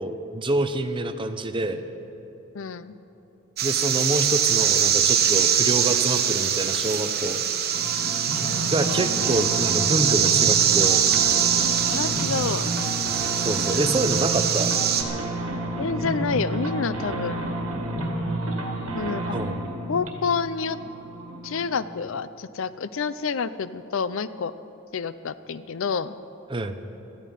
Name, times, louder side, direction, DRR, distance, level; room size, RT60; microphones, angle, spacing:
voice 1, 0.0-1.8 3.6-7.4 8.6-11.0 13.4-14.7 19.3-19.6 26.5-26.8, right 2 dB, 20° right, 8 dB, 0.7 m, -26 dB
voice 2, 2.5-3.0 8.4-8.7 11.9-12.7 15.8-17.5 18.9-19.4 19.9-20.8 21.4-24.5 24.9-26.1, left 5 dB, 60° left, 15 dB, 0.5 m, -28 dB
sound 1, 3.6-15.0, right 9 dB, 45° right, 1.2 m, -23 dB
sound 2, 7.7-21.8, right 1 dB, 70° right, 2.1 m, -30 dB
17.5 x 13.5 x 5.4 m, 3.0 s
head